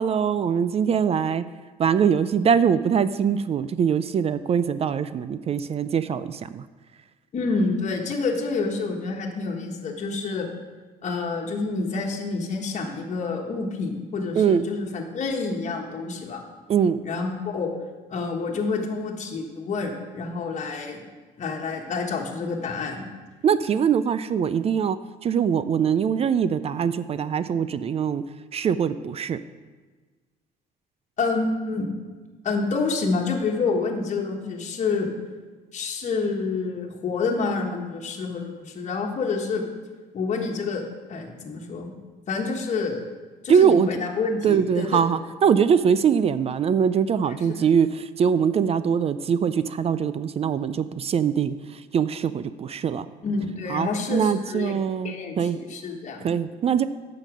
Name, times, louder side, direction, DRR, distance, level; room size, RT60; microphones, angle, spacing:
voice 1, 0.0-1.4 1.8-6.6 14.4-14.7 16.7-17.0 23.4-25.0 25.2-28.2 28.5-29.4 43.5-43.9 44.4-51.6 51.9-53.1 53.7-55.6 56.2-56.9, right 7 dB, 35° right, 14 dB, 0.4 m, -22 dB
voice 2, 7.3-10.5 11.0-16.4 17.0-17.7 18.1-21.0 21.4-23.1 31.2-31.9 32.4-35.1 35.7-39.6 40.1-40.8 41.1-41.9 42.3-43.0 43.4-45.0 47.5-47.6 53.2-54.7 55.0-56.3, left 4 dB, 45° left, 0 dB, 1.4 m, -28 dB
8.8 x 5.9 x 6.1 m, 1.3 s
cardioid pair, 110°, 17 cm